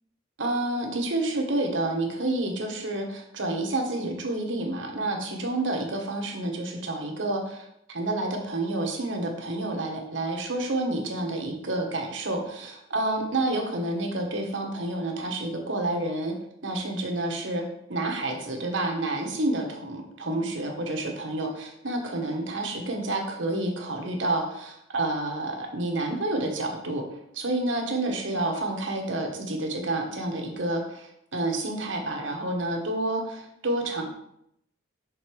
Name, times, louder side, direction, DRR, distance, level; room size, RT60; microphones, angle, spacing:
voice 1, 0.4-16.3 16.6-17.6 17.9-27.0 27.3-34.0, right 2 dB, 65° right, 2 dB, 1.2 m, -29 dB
6.5 x 3.9 x 4.6 m, 0.77 s
head